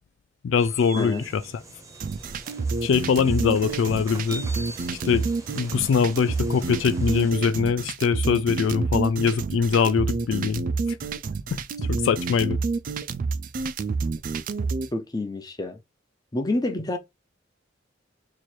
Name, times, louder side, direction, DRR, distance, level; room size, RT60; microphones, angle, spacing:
voice 1, 0.4-1.4 2.8-4.6 5.0-5.3 5.5-11.0 11.5-12.6, left 6 dB, 75° left, 0.3 m, -23 dB
sound 1, 0.6-7.3, right 2 dB, 15° right, 0.7 m, -43 dB
voice 2, 1.0-1.3 14.9-15.8 16.3-17.0, left 2 dB, 20° left, 0.6 m, -28 dB
sound 2, 2.0-14.9, right 4 dB, 45° right, 0.3 m, -28 dB
3.0 x 2.5 x 4.4 m
head